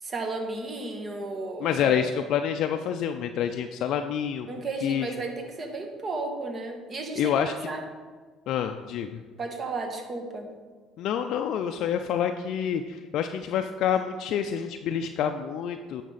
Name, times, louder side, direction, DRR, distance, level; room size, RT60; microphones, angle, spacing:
voice 1, 0.0-2.1 4.5-7.8 9.4-10.5, right 3 dB, 40° right, 4 dB, 1.5 m, -34 dB
voice 2, 1.6-4.5 4.8-5.1 7.2-7.7 8.5-9.2 11.0-16.0, left 8 dB, 65° left, 6 dB, 0.4 m, -27 dB
9.1 x 5.9 x 4.1 m, 1.5 s
supercardioid pair, 75°, 0 cm